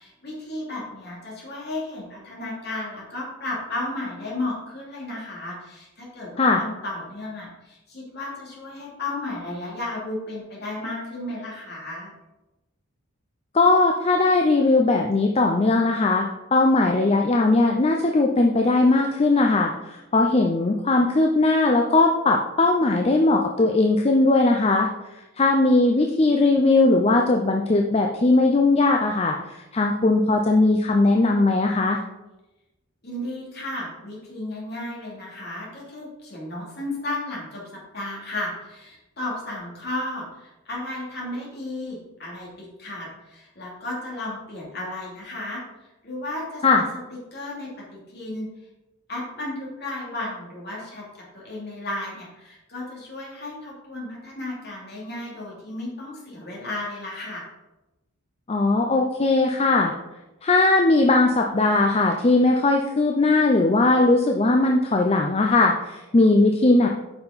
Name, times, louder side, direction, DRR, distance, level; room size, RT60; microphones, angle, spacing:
voice 1, 0.0-12.1 33.0-45.6 46.0-46.9 47.3-48.5 49.1-51.0 51.3-57.4, left 2 dB, 50° left, -4 dB, 2.8 m, -34 dB
voice 2, 13.5-24.9 25.4-32.0 46.6-46.8 58.5-59.9 60.4-66.9, left 2 dB, 30° left, 2 dB, 0.5 m, -19 dB
8.8 x 5.7 x 4.1 m, 1.0 s
head